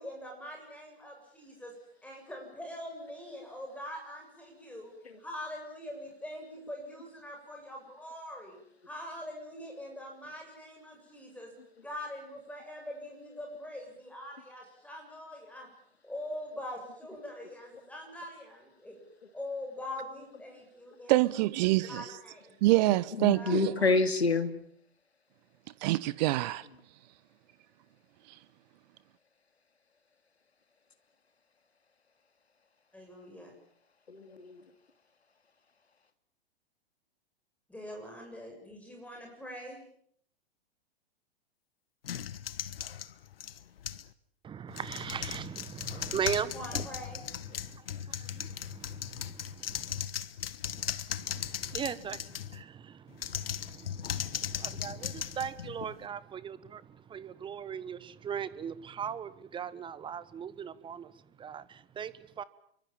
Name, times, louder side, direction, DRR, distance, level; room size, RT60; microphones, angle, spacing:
voice 1, 0.0-1.7 2.0-4.9 5.2-8.6 8.8-11.5 11.8-15.7 16.0-19.0 19.3-21.2 21.6-22.6 23.3-23.8 32.9-33.5 37.7-39.9 46.5-47.3, left 1 dB, 5° left, 7.8 m, -43 dB
voice 2, 21.1-21.9 22.6-23.7 25.8-26.6, right 18 dB, 40° right, 1.2 m, -25 dB
voice 3, 22.9-24.5 34.1-34.6, left 3 dB, 80° left, 2.8 m, -28 dB
sound 1, 42.0-44.1 44.7-52.6 53.1-56.1, left 9 dB, 65° left, 1.2 m, -38 dB
voice 4, 44.4-46.9 47.6-50.0 50.7-50.9 51.2-56.8 57.1-61.1 61.4-62.4, right 8 dB, 15° right, 1.2 m, -39 dB
28.0 x 24.0 x 7.3 m
figure-of-eight pair, 105°, 31 cm